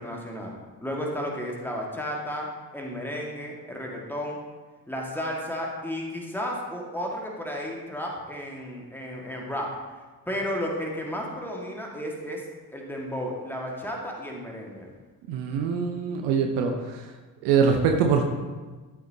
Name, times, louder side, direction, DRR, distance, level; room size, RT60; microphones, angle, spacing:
voice 1, 0.0-2.5 2.7-4.4 4.9-9.7 10.3-12.4 12.7-14.9, equal, 5° left, -1 dB, 1.8 m, -33 dB
voice 2, 15.3-17.1 17.4-18.2, right 6 dB, 55° right, 4 dB, 0.9 m, -23 dB
12.5 x 6.1 x 2.8 m, 1.3 s
figure-of-eight pair, 50°, 49 cm